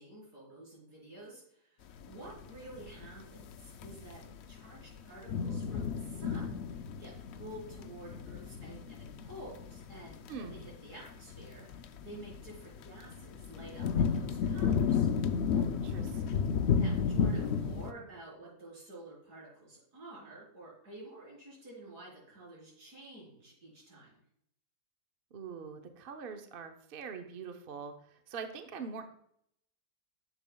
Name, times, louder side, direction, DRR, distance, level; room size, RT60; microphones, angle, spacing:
voice 1, 0.0-4.2 4.5-15.1 16.7-24.2, right 1 dB, 75° right, -5 dB, 4.3 m, -50 dB
sound 1, 2.0-17.9, left 6 dB, 85° left, 0.5 m, -33 dB
voice 2, 15.5-16.7 25.3-27.9 28.3-29.0, right 5 dB, 50° right, 6 dB, 0.7 m, -43 dB
10.5 x 7.0 x 2.3 m, 0.71 s
omnidirectional pair, 1.7 m